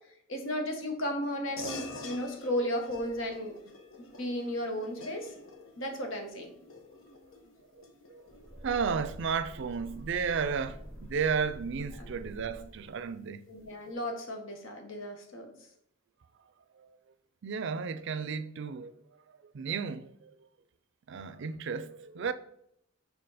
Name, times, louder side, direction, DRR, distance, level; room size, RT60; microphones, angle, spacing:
voice 1, 0.3-3.6 4.0-5.3 5.8-6.5 12.0-12.1 13.5-15.5, equal, 70° left, 1.3 m, -34 dB
sound 1, 1.6-11.4, left 3 dB, 85° left, 1.0 m, -48 dB
voice 2, 7.7-8.3 8.6-13.5 16.8-17.0 17.4-18.9 19.5-20.4 21.1-22.3, right 6 dB, 60° right, 0.4 m, -33 dB
sound 2, 8.3-13.2, equal, 5° left, 1.5 m, -47 dB
6.5 x 4.1 x 4.1 m
head